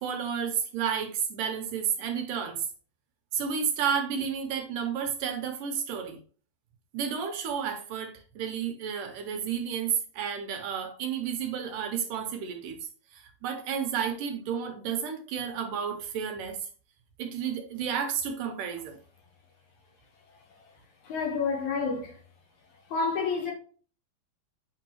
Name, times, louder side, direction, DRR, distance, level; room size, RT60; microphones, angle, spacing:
voice 1, 0.0-2.7 3.3-6.2 6.9-12.8 13.1-16.7 17.2-19.0, right 7 dB, 70° right, 2.3 m, -31 dB
voice 2, 21.0-22.1 22.9-23.5, left 4 dB, 60° left, 2.4 m, -29 dB
9.0 x 5.8 x 3.0 m
omnidirectional pair, 4.2 m